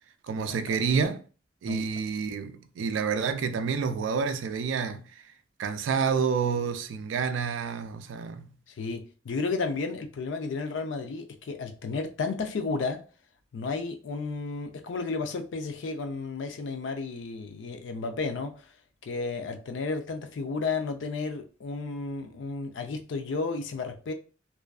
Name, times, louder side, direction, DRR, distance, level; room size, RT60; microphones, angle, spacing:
voice 1, 0.2-1.2 1.6-5.2 5.6-8.5, right 6 dB, 90° right, 0.3 m, -29 dB
voice 2, 8.7-13.0 13.5-18.6 19.0-24.1, left 4 dB, 80° left, 0.4 m, -32 dB
2.5 x 2.3 x 2.3 m
head